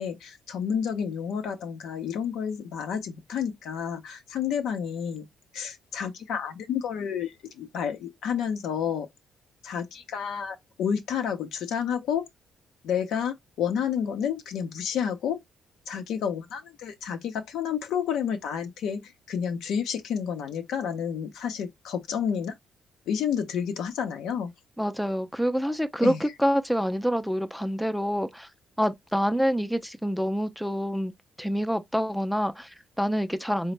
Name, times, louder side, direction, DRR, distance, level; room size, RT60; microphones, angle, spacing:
voice 1, 0.0-5.3 5.5-9.1 9.6-12.3 12.8-15.4 15.9-22.5 23.1-24.5 26.0-26.2, left 7 dB, 80° left, 0.7 m, -30 dB
voice 2, 24.8-28.5 28.8-33.7, equal, ahead, 0.4 m, -27 dB
3.9 x 2.1 x 3.1 m
cardioid pair, 90°, 0 cm